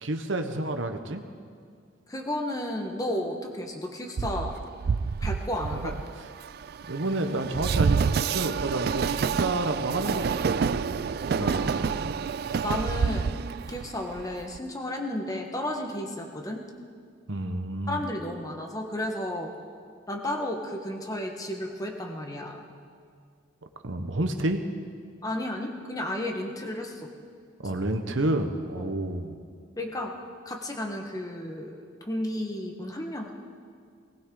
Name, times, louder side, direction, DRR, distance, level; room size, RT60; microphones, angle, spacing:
voice 1, 0.0-1.2 5.7-5.9 6.9-12.2 17.3-18.0 23.8-24.6 27.6-29.4, right 2 dB, 75° right, 6 dB, 1.1 m, -30 dB
voice 2, 2.1-4.5 5.2-5.9 11.4-12.2 12.6-13.4 13.7-16.6 17.9-19.5 20.1-22.6 25.2-27.1 27.6-27.7 28.8-28.9 29.8-30.1 30.4-33.3, left 1 dB, 20° left, 2 dB, 1.4 m, -33 dB
Train, 4.2-14.6, right 6 dB, 50° right, 0.3 m, -28 dB
19.5 x 18.5 x 3.9 m, 2.2 s
head